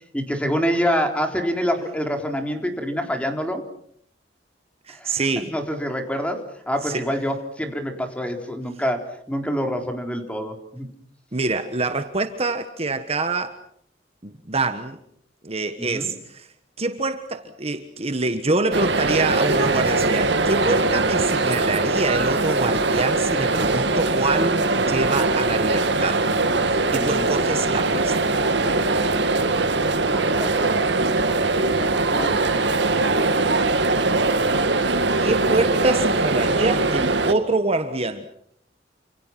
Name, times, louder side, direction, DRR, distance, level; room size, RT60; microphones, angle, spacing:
voice 1, 0.1-3.6 4.9-5.2 5.5-10.9 15.8-16.1 27.0-27.3 29.9-30.9 31.3-32.6, equal, 5° left, 3.8 m, -27 dB
voice 2, 4.9-5.5 6.8-7.0 11.3-13.6 14.2-15.0 15.4-16.5 16.8-26.3 26.7-28.3 35.2-38.3, right 2 dB, 35° right, 1.4 m, -25 dB
sound 1, 18.7-37.3, right 3 dB, 65° right, 2.1 m, -21 dB
29.0 x 27.5 x 6.0 m
head